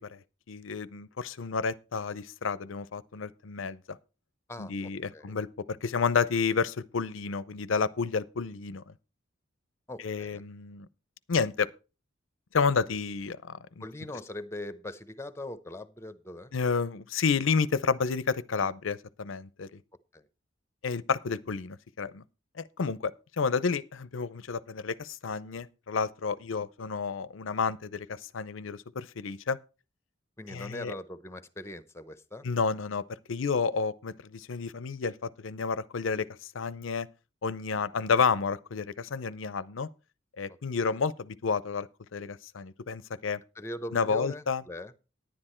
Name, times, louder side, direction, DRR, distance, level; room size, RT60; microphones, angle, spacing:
voice 1, 0.5-4.0 4.6-8.8 10.0-10.9 11.3-11.7 12.5-13.8 16.5-19.7 20.8-22.2 22.6-29.6 30.5-30.9 32.4-37.1 37.4-39.9 40.4-43.4 43.9-44.6, left 5 dB, 80° left, 0.6 m, -30 dB
voice 2, 4.5-5.4 9.9-10.4 13.8-16.5 20.1-20.3 30.4-32.5 43.6-44.9, left 1 dB, 15° left, 0.7 m, -41 dB
10.5 x 10.0 x 4.4 m
head